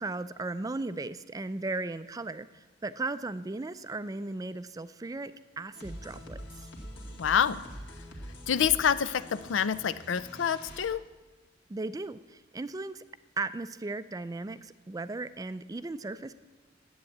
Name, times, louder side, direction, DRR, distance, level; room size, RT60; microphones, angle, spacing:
voice 1, 0.0-6.7 11.7-13.0 13.4-16.3, right 3 dB, 20° right, 13 dB, 0.4 m, -36 dB
sound 1, 5.7-10.9, equal, 65° left, 2.1 m, -45 dB
voice 2, 7.2-7.6 8.5-11.0, left 8 dB, 85° left, 16 dB, 0.5 m, -27 dB
10.5 x 8.2 x 8.6 m, 1.2 s
head